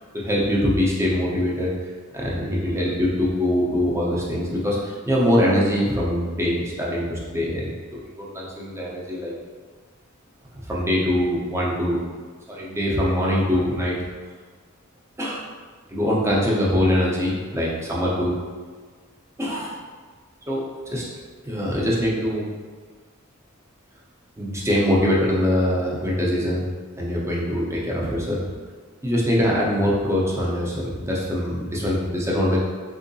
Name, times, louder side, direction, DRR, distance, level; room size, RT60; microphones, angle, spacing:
voice 1, 0.1-1.7 2.1-7.7 8.2-9.3 10.7-12.0 12.5-14.0 15.2-15.4 15.9-18.3 19.4-19.8 20.5-20.6 20.9-21.0 21.4-22.5 24.4-26.6 27.0-28.5 29.0-32.6, equal, 15° right, -5 dB, 0.6 m, -23 dB
3.7 x 2.7 x 2.6 m, 1.5 s
head